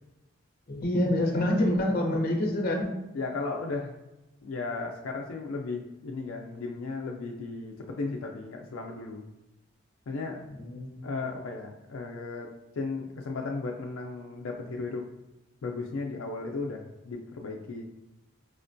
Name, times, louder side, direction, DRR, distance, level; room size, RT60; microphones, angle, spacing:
voice 1, 0.7-3.0 10.6-11.1, left 1 dB, 50° left, 1 dB, 0.7 m, -27 dB
voice 2, 3.1-4.0 4.4-9.3 10.1-10.4 11.0-12.5 12.8-15.1 15.6-17.8, left 3 dB, 85° left, 0 dB, 0.4 m, -35 dB
4.9 x 2.2 x 2.5 m, 1.0 s
head